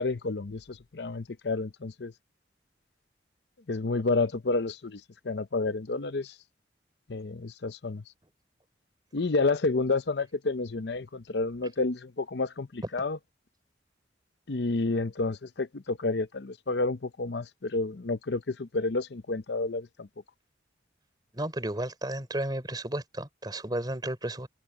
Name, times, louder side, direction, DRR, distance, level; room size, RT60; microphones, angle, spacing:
voice 1, 0.0-2.1 3.7-6.4 7.1-8.0 9.1-13.2 14.5-20.1, left 3 dB, 65° left, 0.7 m, -30 dB
voice 2, 21.3-24.5, right 1 dB, 20° right, 3.8 m, -33 dB
head